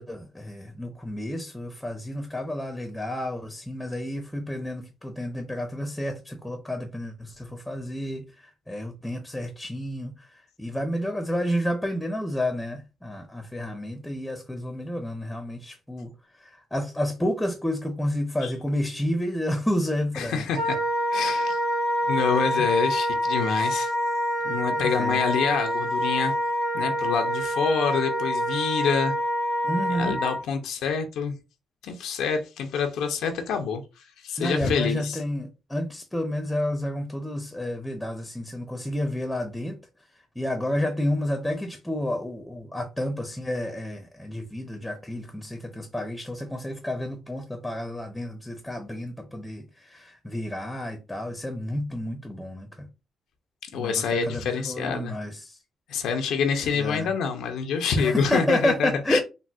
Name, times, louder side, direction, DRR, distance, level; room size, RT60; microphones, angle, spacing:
voice 1, 0.0-16.1 16.4-20.4 22.5-22.7 24.7-25.2 29.6-30.2 34.4-39.8 40.4-52.9 53.7-55.6 56.8-57.1 57.9-59.2, left 1 dB, 5° left, 0.5 m, -30 dB
voice 2, 20.1-20.8 21.1-21.6 22.1-23.9 24.4-26.3 26.7-29.1 29.9-31.4 31.8-35.2 53.6-55.2 55.9-59.2, left 6 dB, 85° left, 0.5 m, -27 dB
Wind instrument woodwind instrument, 20.5-30.4, equal, 90° right, 1.3 m, -26 dB
3.8 x 2.0 x 2.3 m
cardioid pair, 90°, 0 cm